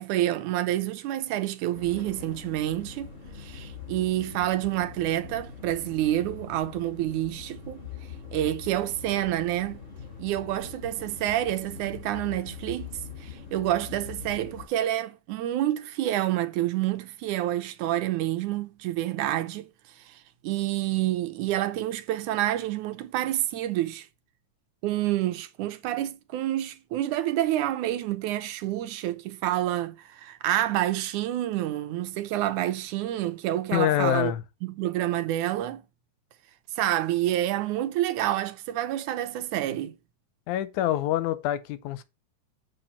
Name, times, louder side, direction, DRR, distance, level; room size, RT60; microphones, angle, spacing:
voice 1, 0.0-7.8 8.3-9.8 10.2-12.9 13.2-19.7 20.1-20.2 20.4-24.1 24.8-34.3 34.6-35.8 36.8-40.0, right 13 dB, 85° right, 2.3 m, -28 dB
sound 1, 1.7-14.7, left 6 dB, 25° left, 3.2 m, -43 dB
voice 2, 33.7-34.4 40.5-42.0, left 13 dB, 85° left, 2.1 m, -26 dB
7.8 x 4.9 x 5.5 m
omnidirectional pair, 3.5 m